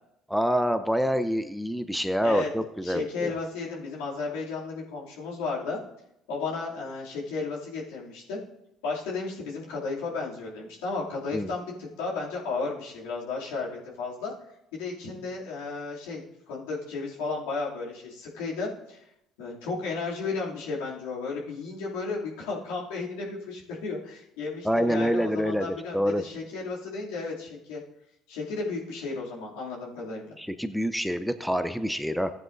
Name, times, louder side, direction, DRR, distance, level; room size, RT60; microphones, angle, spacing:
voice 1, 0.3-3.3 11.3-11.5 24.6-26.2 30.4-32.3, equal, ahead, 10 dB, 0.7 m, -26 dB
voice 2, 2.8-5.8 6.3-8.4 8.8-13.7 14.0-14.3 14.7-19.0 19.4-27.8 28.3-30.4, left 4 dB, 85° left, -4 dB, 2.6 m, -33 dB
15.5 x 9.4 x 2.6 m, 0.83 s
hypercardioid pair, 65°, 0 cm